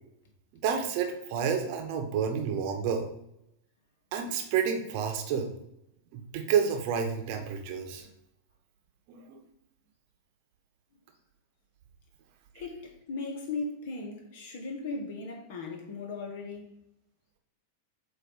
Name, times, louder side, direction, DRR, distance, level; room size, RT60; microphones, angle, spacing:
voice 1, 0.5-3.1 4.1-5.5 6.1-8.1 9.1-9.4, right 7 dB, 45° right, 1.0 m, -30 dB
voice 2, 12.5-16.8, left 3 dB, 50° left, 1.5 m, -37 dB
7.8 x 2.8 x 4.8 m
figure-of-eight pair, 90°, 0 cm